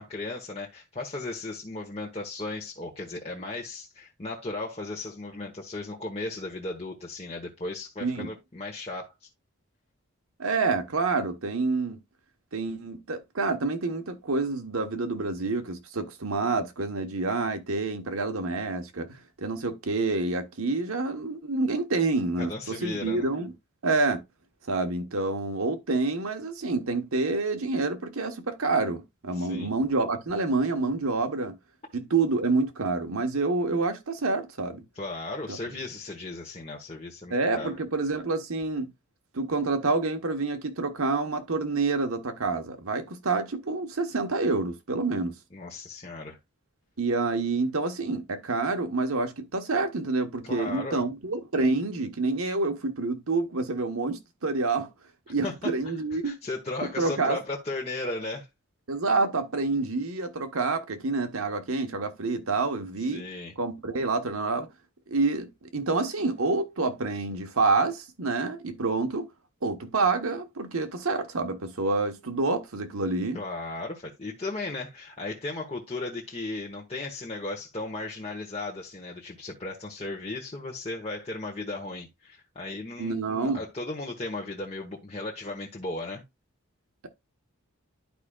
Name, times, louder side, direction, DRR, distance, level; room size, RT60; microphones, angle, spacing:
voice 1, 0.0-9.1 22.4-23.3 29.3-29.7 34.9-37.8 45.5-46.4 50.5-51.0 55.4-55.5 56.1-58.5 63.1-63.5 73.3-86.2, left 2 dB, 30° left, 1.1 m, -36 dB
voice 2, 8.0-8.3 10.4-12.0 12.5-23.5 23.8-24.2 24.7-31.6 31.9-34.8 35.5-35.6 37.3-38.9 39.3-45.4 47.0-54.9 55.3-56.4 57.0-57.4 58.9-63.3 63.6-64.7 65.1-69.3 69.6-73.4 83.0-83.6, right 3 dB, 85° right, 1.2 m, -28 dB
11.5 x 5.0 x 2.4 m
head